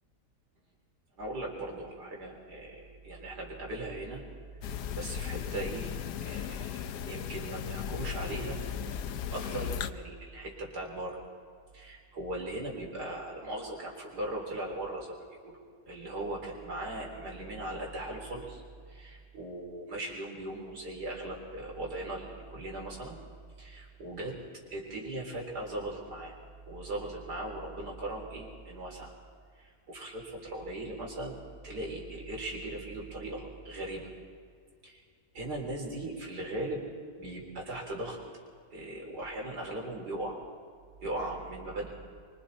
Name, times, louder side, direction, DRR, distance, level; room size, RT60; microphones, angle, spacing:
voice 1, 1.2-4.2 4.7-5.9 6.2-8.6 9.3-11.2 11.7-15.6 15.9-18.6 18.9-23.2 23.6-24.3 24.7-26.4 26.7-29.1 29.6-31.4 31.6-34.1 34.8-35.0 35.3-36.8 37.2-38.2 38.7-40.4 41.0-41.9, right 1 dB, 80° right, -1 dB, 4.4 m, -38 dB
sound 1, 4.6-9.9, left 9 dB, 85° left, 1.3 m, -36 dB
25.5 x 24.0 x 4.3 m, 2.1 s
omnidirectional pair, 1.7 m